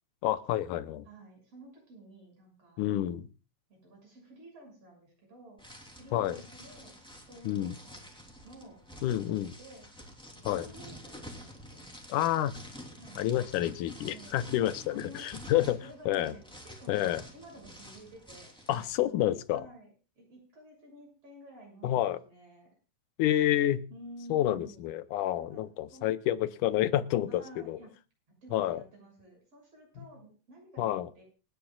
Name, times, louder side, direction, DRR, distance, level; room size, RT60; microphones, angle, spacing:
voice 1, 0.2-1.0 2.8-3.3 6.1-6.4 7.5-7.8 9.0-9.5 10.4-10.7 12.1-12.6 13.2-15.8 16.1-16.3 16.9-17.2 18.7-19.7 21.8-22.2 23.2-23.8 24.3-27.4 27.7-27.8 28.5-28.8 30.8-31.1, left 13 dB, 90° left, 13 dB, 2.4 m, -29 dB
voice 2, 1.0-3.2 3.7-5.6 6.0-8.1 8.4-8.8 9.1-9.9 10.3-11.8 13.0-13.3 14.0-14.4 14.9-17.0 17.3-18.5 19.5-19.9 20.2-22.7 23.9-25.0 25.4-25.6 25.9-26.1 27.3-27.9 28.4-31.2, right 1 dB, 50° right, 1 dB, 7.7 m, -52 dB
sound 1, 5.6-19.0, equal, ahead, 2.8 m, -49 dB
27.5 x 10.0 x 2.4 m, 0.32 s
omnidirectional pair, 3.5 m